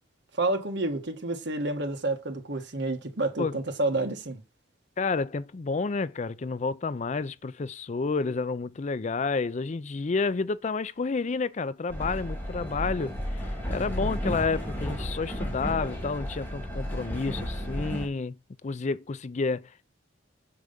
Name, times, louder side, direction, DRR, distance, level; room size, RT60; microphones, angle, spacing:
voice 1, 0.4-4.4, right 2 dB, 60° right, 1.5 m, -29 dB
voice 2, 5.0-18.4 18.6-19.8, left 4 dB, 40° left, 0.4 m, -30 dB
Train, 11.9-18.1, equal, 10° left, 2.6 m, -33 dB
6.8 x 4.8 x 5.2 m
head